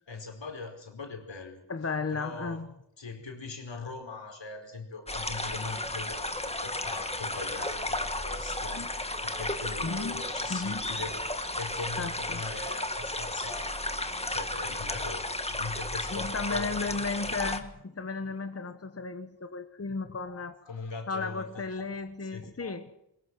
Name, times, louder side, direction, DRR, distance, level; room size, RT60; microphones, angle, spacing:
voice 1, 0.1-1.6 2.1-2.6 3.0-8.9 9.2-17.2 18.6-18.7 20.2-21.8 22.3-22.8, left 4 dB, 80° left, 4 dB, 5.0 m, -41 dB
voice 2, 1.7-2.7 8.7-8.9 9.8-10.2 10.5-10.9 12.0-12.4 16.1-20.6 21.1-22.9, left 4 dB, 35° left, 9 dB, 1.3 m, -34 dB
sound 1, 5.1-17.6, left 1 dB, 15° left, 1.8 m, -34 dB
22.0 x 21.0 x 6.4 m, 0.78 s
wide cardioid pair, 95°, 44 cm